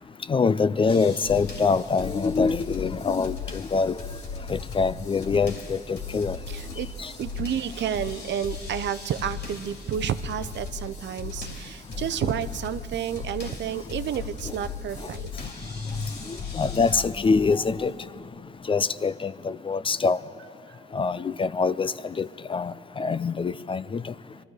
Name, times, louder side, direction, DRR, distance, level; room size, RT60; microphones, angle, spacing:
voice 1, 0.3-4.0 4.5-6.4 7.0-7.1 12.2-12.3 14.4-14.5 15.0-15.1 16.3-17.9 18.7-20.2 20.9-24.1, left 4 dB, 25° left, 16 dB, 0.4 m, -25 dB
sound 1, 0.9-17.0, left 5 dB, 60° left, 2.7 m, -37 dB
voice 2, 6.5-6.9 7.2-15.3, right 9 dB, 65° right, 13 dB, 0.6 m, -30 dB
23.0 x 13.0 x 4.8 m, 2.7 s
cardioid pair, 90°, 20 cm